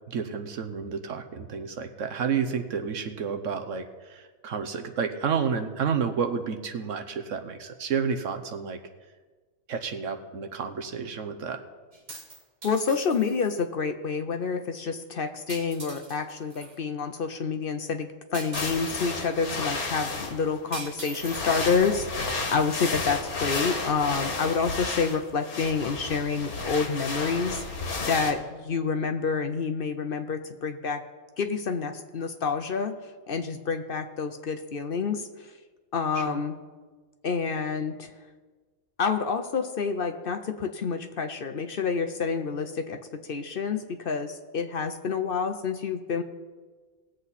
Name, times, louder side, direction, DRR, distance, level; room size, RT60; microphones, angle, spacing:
voice 1, 0.1-8.8 9.7-11.6 36.1-36.4, right 6 dB, 65° right, 7 dB, 1.1 m, -30 dB
sound 1, 11.9-13.6 15.5-16.8 18.3-19.0 20.7-22.3, right 2 dB, 30° right, 1.3 m, -42 dB
voice 2, 12.6-27.6 28.0-31.0 31.4-33.0 33.3-35.3 35.9-36.5 37.2-38.1 39.0-43.0 43.3-46.2, left 5 dB, 50° left, 7 dB, 0.7 m, -28 dB
sound 2, 18.5-20.6 21.1-28.3, left 3 dB, 80° left, 1.9 m, -32 dB
19.5 x 7.7 x 4.1 m, 1.4 s
omnidirectional pair, 1.5 m